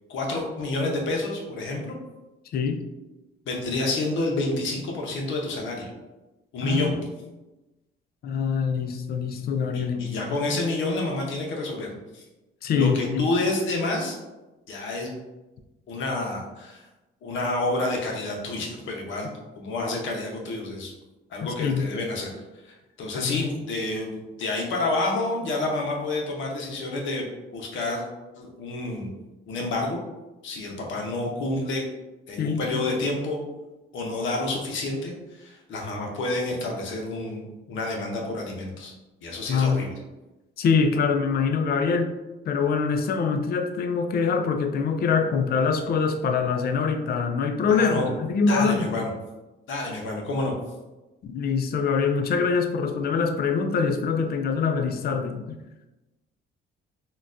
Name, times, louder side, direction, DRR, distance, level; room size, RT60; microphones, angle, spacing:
voice 1, 0.1-1.9 3.5-5.9 6.5-6.9 9.7-11.9 12.1-12.2 12.7-14.2 14.7-15.2 15.9-16.9 17.2-20.9 21.3-22.3 22.6-27.3 27.5-28.0 28.4-29.1 29.5-30.0 30.4-31.8 32.3-33.4 33.9-38.9 39.2-39.9 47.7-48.1 48.5-49.1 49.7-50.5, left 2 dB, 75° left, 0 dB, 0.7 m, -29 dB
voice 2, 2.5-2.8 6.6-7.1 8.2-10.2 12.6-13.2 21.6-21.8 23.1-23.4 32.4-32.8 39.5-39.8 40.6-42.1 42.5-49.0 51.2-55.6, left 5 dB, 50° left, 6 dB, 0.4 m, -24 dB
3.8 x 2.2 x 2.4 m, 1.0 s
cardioid pair, 90°, 20 cm